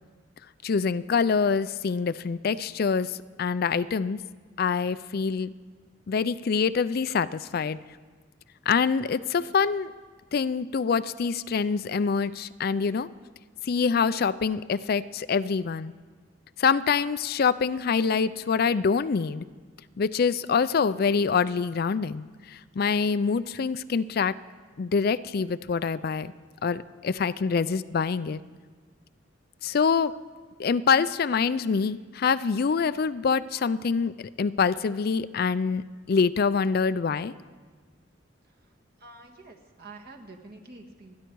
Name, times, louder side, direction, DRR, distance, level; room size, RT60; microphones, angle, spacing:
voice 1, 0.6-4.2 4.6-5.5 6.1-7.8 8.7-9.9 10.3-13.1 13.6-15.9 16.6-19.5 20.0-24.3 24.8-26.3 26.6-28.4 29.6-30.1 30.6-34.1 34.4-37.3, left 5 dB, 50° left, 15 dB, 0.4 m, -25 dB
voice 2, 39.0-41.1, right 3 dB, 55° right, 2 dB, 1.8 m, -47 dB
29.5 x 10.5 x 4.6 m, 1.5 s
head